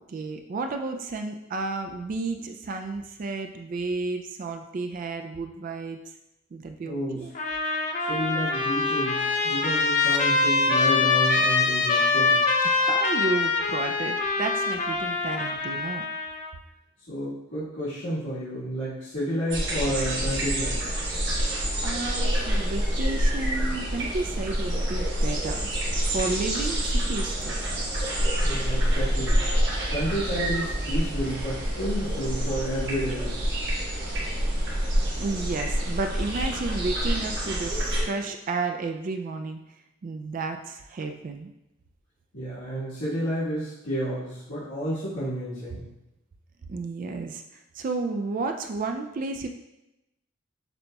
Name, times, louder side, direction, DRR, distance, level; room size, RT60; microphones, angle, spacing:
voice 1, 0.0-6.0 6.5-7.3 12.6-16.1 21.5-25.7 26.0-27.5 35.2-39.6 40.0-41.5 46.7-49.5, right 3 dB, 45° right, 5 dB, 0.3 m, -32 dB
voice 2, 6.8-7.3 8.1-12.4 17.1-20.9 28.4-29.4 29.9-33.4 42.3-45.9, equal, 75° left, -14 dB, 1.4 m, -31 dB
Trumpet, 7.3-16.5, left 3 dB, 40° left, 0.4 m, -24 dB
sound 1, 19.5-38.0, right 1 dB, 65° right, 1.2 m, -27 dB
6.7 x 2.8 x 2.2 m, 0.90 s
head